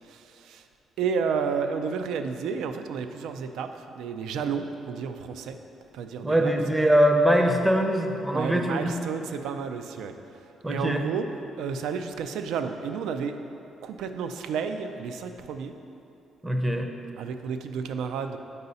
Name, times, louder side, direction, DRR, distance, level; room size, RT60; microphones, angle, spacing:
voice 1, 0.1-0.6 1.0-5.6 5.9-6.5 8.3-10.2 10.7-11.3 11.6-13.4 13.8-15.7 17.2-18.4, right 6 dB, 85° right, 8 dB, 0.3 m, -31 dB
voice 2, 6.2-9.0 10.6-11.1 16.4-16.9, equal, 10° right, 3 dB, 0.5 m, -22 dB
5.4 x 4.7 x 4.0 m, 2.8 s
cardioid pair, 90°, 0 cm